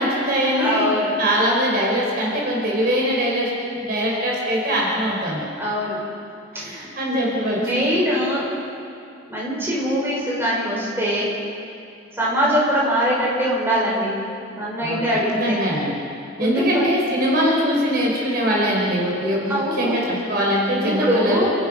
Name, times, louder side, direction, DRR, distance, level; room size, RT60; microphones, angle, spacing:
voice 1, 0.0-0.9 1.2-3.5 3.8-5.4 6.5-7.8 14.8-15.0 15.4-15.9 16.4-21.5, equal, 50° right, -3 dB, 4.7 m, -22 dB
voice 2, 0.6-1.1 5.6-6.0 6.5-8.5 9.3-11.3 12.1-14.1 14.5-15.6 16.4-16.9 19.5-20.1 20.8-21.5, equal, 10° right, -6 dB, 6.1 m, -23 dB
29.5 x 15.5 x 5.6 m, 2.6 s
head